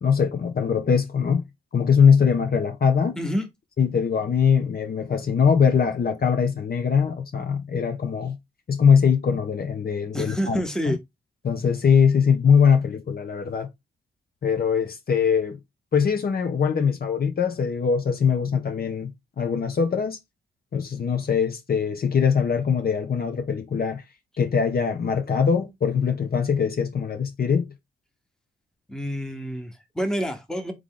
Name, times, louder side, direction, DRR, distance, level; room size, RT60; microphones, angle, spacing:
voice 1, 0.0-1.4 1.7-3.2 3.8-8.4 8.7-10.6 10.9-11.0 11.4-13.7 14.4-15.6 15.9-19.1 19.4-20.2 20.7-24.0 24.4-27.7, left 6 dB, 50° left, 0.9 m, -22 dB
voice 2, 3.2-3.5 10.1-11.0 28.9-30.7, equal, 5° left, 1.2 m, -28 dB
3.6 x 3.3 x 3.8 m
cardioid pair, 65°, 20 cm